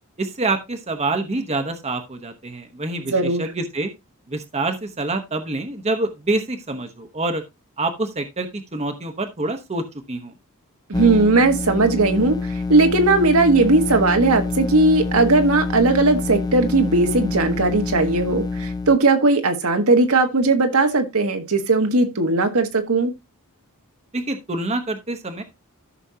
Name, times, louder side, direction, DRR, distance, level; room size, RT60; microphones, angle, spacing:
voice 1, 0.2-3.9 4.3-7.4 7.8-10.3 24.1-25.4, right 2 dB, 30° right, 1.0 m, -26 dB
voice 2, 3.0-3.4 10.9-12.4 12.7-23.1, right 3 dB, 70° right, 1.5 m, -18 dB
sound 1, 10.9-19.0, left 3 dB, 20° left, 0.6 m, -26 dB
13.5 x 6.1 x 2.7 m
head